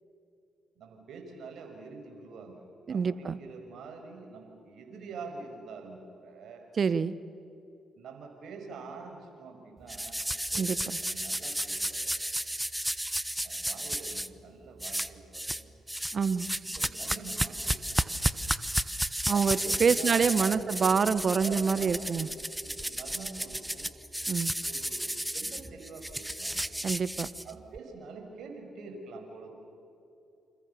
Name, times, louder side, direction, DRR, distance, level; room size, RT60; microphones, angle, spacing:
voice 1, 0.8-6.6 8.0-10.2 10.5-10.7 11.0-12.3 13.4-15.7 16.6-18.2 19.3-20.9 21.4-22.3 22.6-23.9 24.6-26.6 27.4-29.5, right 4 dB, 65° right, 3 dB, 6.0 m, -45 dB
voice 2, 2.9-3.4 6.8-7.1 10.6-11.0 16.1-16.5 19.3-22.3 24.3-24.5 26.8-27.3, right 6 dB, 50° right, 16 dB, 1.2 m, -27 dB
sound 1, 9.9-14.3 14.8-15.6 15.9-27.8, right 1 dB, 5° right, 1.1 m, -33 dB
29.0 x 28.0 x 7.0 m, 2.7 s
hypercardioid pair, 50°, 0 cm